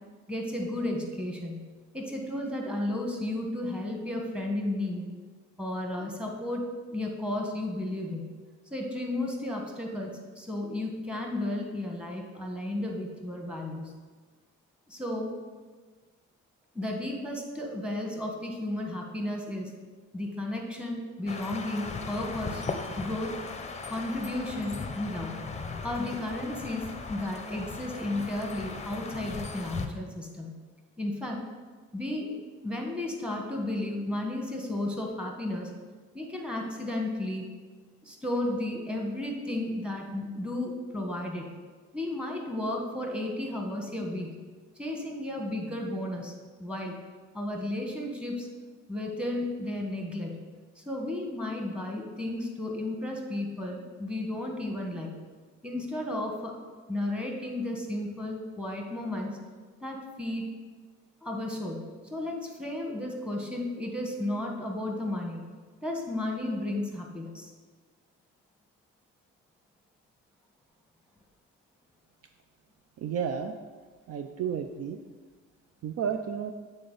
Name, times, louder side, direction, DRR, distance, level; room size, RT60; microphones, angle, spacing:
voice 1, 0.3-1.7 1.9-5.0 5.6-8.2 8.7-13.9 14.9-15.4 16.7-19.7 20.1-22.6 23.0-23.3 23.9-25.3 25.8-30.5 31.0-31.4 31.9-32.3 32.6-35.7 36.1-37.4 38.0-41.5 41.9-44.4 44.8-47.0 47.3-48.5 48.9-50.4 50.8-55.1 55.6-56.5 56.9-59.3 59.8-60.4 61.2-65.5 65.8-67.5, left 1 dB, 5° right, 0 dB, 1.2 m, -33 dB
sound 1, 21.3-29.9, left 4 dB, 25° left, 0.6 m, -38 dB
voice 2, 73.0-73.6 74.1-75.0 75.8-76.5, right 7 dB, 55° right, 6 dB, 0.4 m, -32 dB
8.6 x 4.0 x 3.9 m, 1.4 s
cardioid pair, 90°, 30 cm